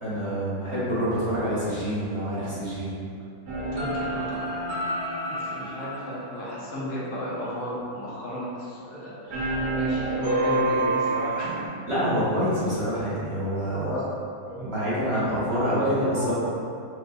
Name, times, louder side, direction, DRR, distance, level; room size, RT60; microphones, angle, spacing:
voice 1, 0.0-2.9 11.9-13.9 14.6-16.4, equal, 20° right, -11 dB, 1.3 m, -27 dB
sound 1, 3.5-7.1 9.3-11.6, right 1 dB, 80° right, 1.5 m, -28 dB
voice 2, 3.7-4.5 5.2-11.7 13.7-14.0 14.4-15.2 15.8-16.3, equal, 75° left, -7 dB, 1.4 m, -33 dB
6.1 x 2.5 x 2.6 m, 2.5 s
omnidirectional pair, 1.5 m